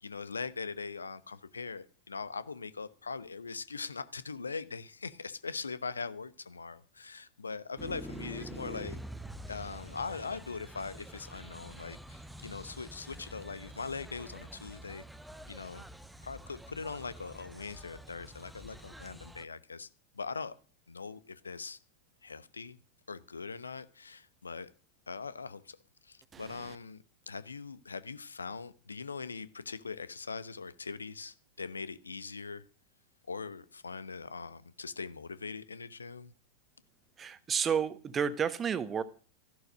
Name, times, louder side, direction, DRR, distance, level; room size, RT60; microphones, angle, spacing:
voice 1, 0.0-9.0 9.5-15.0 15.5-15.8 16.2-19.9 20.2-20.5 20.9-21.8 22.2-22.8 23.1-24.7 25.1-25.8 26.0-32.6 33.3-36.3, left 4 dB, 75° left, 1.0 m, -41 dB
sound 1, 7.8-19.4, right 1 dB, 5° right, 1.0 m, -47 dB
voice 2, 37.2-39.0, right 7 dB, 20° right, 1.3 m, -31 dB
14.0 x 11.5 x 6.4 m
figure-of-eight pair, 90°, 0 cm